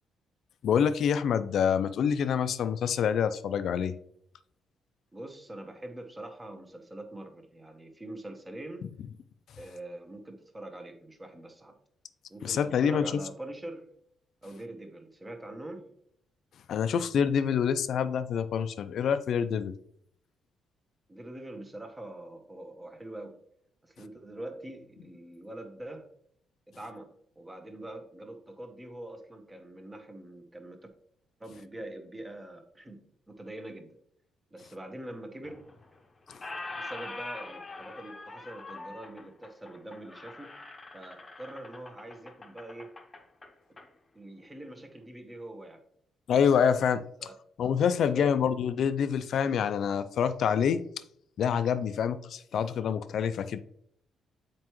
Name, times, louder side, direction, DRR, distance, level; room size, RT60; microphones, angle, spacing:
voice 1, 0.6-3.9 12.4-13.0 16.7-19.7 46.3-47.0 47.6-50.8 51.4-53.6, left 7 dB, 65° left, 12 dB, 0.4 m, -26 dB
voice 2, 5.1-8.9 9.6-11.8 12.3-13.9 14.4-15.9 21.1-23.3 23.8-26.1 26.7-30.8 31.4-33.9 34.5-35.7 36.8-40.6 40.9-42.9 44.1-45.8 47.2-47.4 48.1-48.4, right 1 dB, 15° right, 5 dB, 1.0 m, -44 dB
Squeak, 35.4-36.0 36.3-43.9, left 2 dB, 25° left, 0.8 m, -44 dB
7.5 x 4.6 x 3.1 m, 0.69 s
cardioid pair, 90°, 0 cm